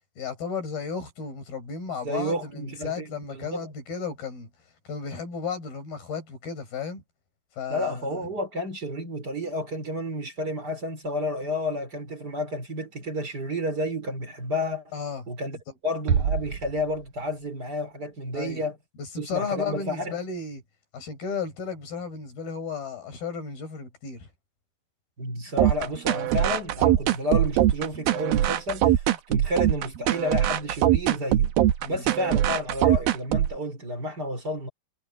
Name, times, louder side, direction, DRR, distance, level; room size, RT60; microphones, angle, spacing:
voice 1, 0.2-4.5 4.9-7.0 7.6-8.2 14.9-15.2 18.3-18.6 19.0-20.6 20.9-24.3 31.8-32.0, left 6 dB, 80° left, 7.9 m, -34 dB
voice 2, 2.0-3.7 7.7-14.8 15.3-15.6 15.8-18.8 19.2-20.1 25.2-31.5 31.9-34.7, left 1 dB, 25° right, 4.8 m, -31 dB
sound 1, 16.1-17.7, right 7 dB, 60° right, 2.0 m, -28 dB
sound 2, 25.6-33.6, right 12 dB, 80° right, 3.0 m, -22 dB
omnidirectional pair, 4.2 m